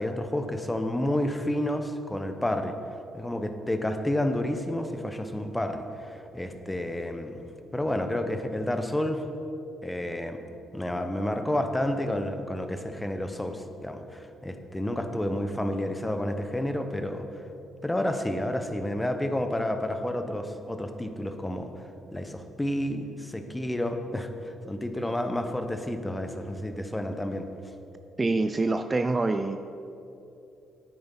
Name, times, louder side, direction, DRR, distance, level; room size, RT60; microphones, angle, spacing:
voice 1, 0.0-2.8 3.1-9.2 9.8-10.4 10.7-17.2 17.8-21.7 22.1-27.5, left 1 dB, 10° left, 7 dB, 0.9 m, -30 dB
voice 2, 28.2-29.6, right 3 dB, 25° right, 9 dB, 0.4 m, -25 dB
9.5 x 8.8 x 5.7 m, 2.9 s
cardioid pair, 90°, 0 cm